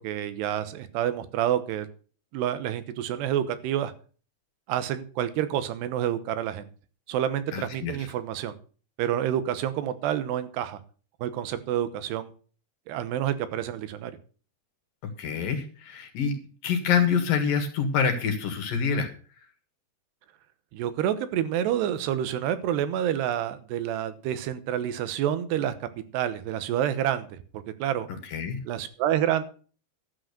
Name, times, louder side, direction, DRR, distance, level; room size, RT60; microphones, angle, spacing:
voice 1, 0.0-1.9 2.3-3.9 4.7-6.7 7.1-8.6 9.0-10.8 11.2-12.3 12.9-14.2 20.7-25.9 26.1-28.1 28.7-29.4, right 11 dB, 85° right, 12 dB, 3.2 m, -28 dB
voice 2, 7.5-8.0 15.2-16.3 16.6-19.1 28.3-28.6, left 6 dB, 60° left, 6 dB, 3.1 m, -26 dB
12.0 x 7.7 x 6.6 m, 0.40 s
omnidirectional pair, 4.7 m